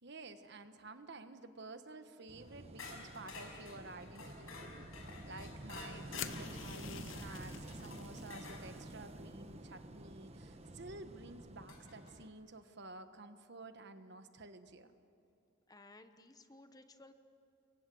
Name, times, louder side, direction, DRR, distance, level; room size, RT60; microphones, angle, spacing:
voice 1, 0.0-14.9, right 2 dB, 55° right, 9 dB, 1.3 m, -52 dB
Wind / Waves surf, 2.3-12.3, right 1 dB, 30° right, 1.2 m, -50 dB
sound 1, 2.8-8.6 10.6-10.7 11.7-12.1, left 3 dB, 90° left, 5.9 m, -51 dB
sound 2, 6.2-8.3, left 9 dB, 65° left, 0.8 m, -47 dB
voice 2, 15.7-17.1, left 2 dB, 20° left, 8 dB, 1.0 m, -58 dB
29.0 x 23.0 x 7.8 m, 2.9 s
head